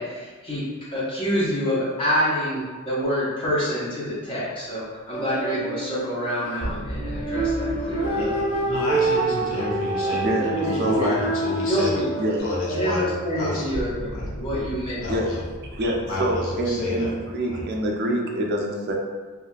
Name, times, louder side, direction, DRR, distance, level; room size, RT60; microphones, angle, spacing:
voice 1, 0.0-8.3 10.0-10.2 10.5-11.3 11.6-12.1 12.7-15.0, equal, 25° left, -8 dB, 0.7 m, -27 dB
sound 1, 5.1-12.4, right 2 dB, 80° left, 1.1 m, -26 dB
sound 2, 6.6-11.7 12.0-12.1 13.7-17.2, equal, 20° right, 0.8 m, -37 dB
voice 2, 8.2-11.9 12.4-13.1 13.4-13.7 14.1-14.2 15.0-15.4 16.1-17.1 17.5-17.6, left 2 dB, 65° left, -4 dB, 0.6 m, -30 dB
voice 3, 10.2-10.5 10.8-11.1 12.2-12.4 15.1-15.3 15.7-18.9, right 1 dB, 50° right, 0 dB, 0.4 m, -26 dB
2.6 x 2.4 x 2.2 m, 1.4 s
head